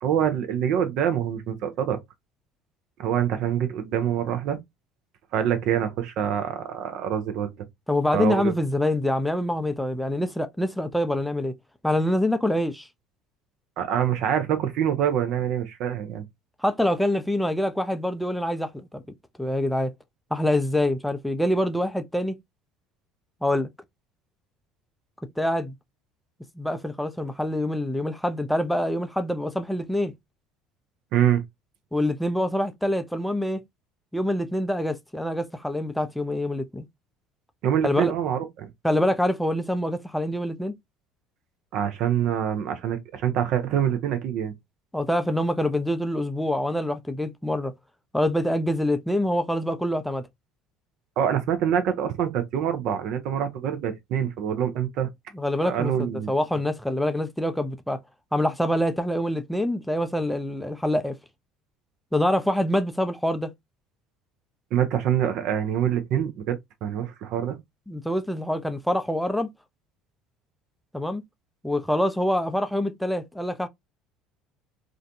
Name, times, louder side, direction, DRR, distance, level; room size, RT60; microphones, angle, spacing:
voice 1, 0.0-2.0 3.0-4.6 5.3-7.5 8.1-8.5 13.8-16.2 31.1-31.4 37.6-38.7 41.7-44.5 51.2-55.1 55.6-56.3 64.7-67.6, right 9 dB, 60° right, 0.5 m, -25 dB
voice 2, 7.9-11.5 11.8-12.9 16.6-19.0 19.4-19.9 20.3-22.4 23.4-23.7 25.4-25.7 26.6-30.1 31.9-33.6 34.1-36.8 37.8-38.1 38.8-40.7 44.9-47.7 48.1-50.2 55.3-58.0 58.3-61.2 62.1-63.5 67.9-69.5 70.9-71.2 71.6-73.7, left 1 dB, ahead, 0.4 m, -25 dB
2.5 x 2.2 x 2.6 m
hypercardioid pair, 65°, 0 cm